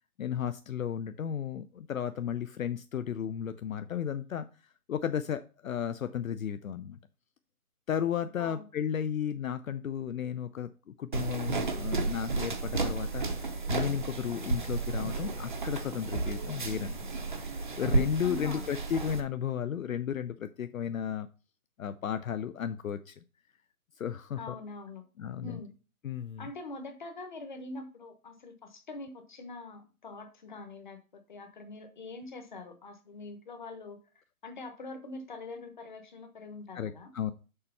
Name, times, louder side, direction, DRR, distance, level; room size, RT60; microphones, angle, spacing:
voice 1, 0.2-4.5 4.9-7.0 7.9-13.2 13.7-17.0 17.8-21.3 21.8-23.2 24.0-24.6 25.2-25.6 26.0-26.5 36.7-37.3, left 8 dB, 65° left, 11 dB, 0.6 m, -34 dB
sound 1, 11.1-19.2, right 3 dB, 35° right, 0.7 m, -32 dB
voice 2, 18.2-18.6 24.4-25.0 25.4-25.7 26.4-34.0 34.4-37.1, left 2 dB, 35° left, 6 dB, 1.0 m, -44 dB
6.7 x 4.2 x 5.5 m, 0.34 s
hypercardioid pair, 170°, 43 cm